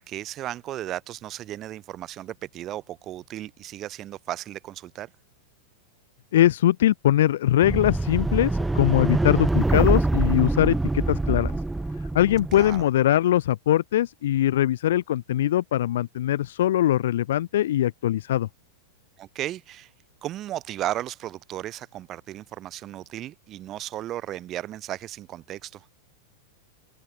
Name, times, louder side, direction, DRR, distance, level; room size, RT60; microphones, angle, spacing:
voice 1, 0.0-5.1 12.5-12.9 19.2-19.9 20.2-25.9, right 13 dB, 35° right, 2.4 m, -35 dB
voice 2, 6.3-11.5 12.1-18.5, left 12 dB, 75° left, 1.8 m, -22 dB
sound 1, 7.6-12.8, right 2 dB, 5° right, 1.7 m, -24 dB
hypercardioid pair, 120°, 0 cm